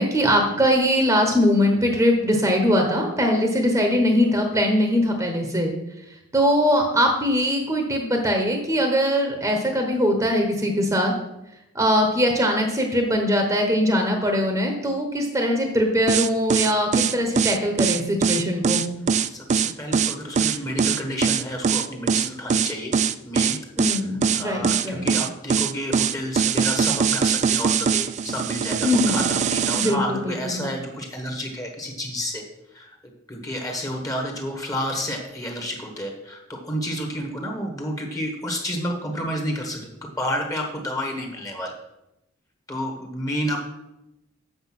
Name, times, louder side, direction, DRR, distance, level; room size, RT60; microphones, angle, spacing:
voice 1, 0.0-5.7 6.3-11.1 11.7-18.8 23.8-25.1 28.8-29.2 29.8-30.6, equal, 15° right, 3 dB, 1.1 m, -21 dB
sound 1, 16.1-29.9, right 6 dB, 35° right, 0.3 m, -22 dB
voice 2, 19.2-23.0 23.2-23.6 23.9-32.4 32.7-32.9 33.3-39.9 40.2-41.7 42.7-43.6, equal, 15° left, 2 dB, 1.4 m, -30 dB
7.9 x 6.6 x 6.0 m, 0.89 s
head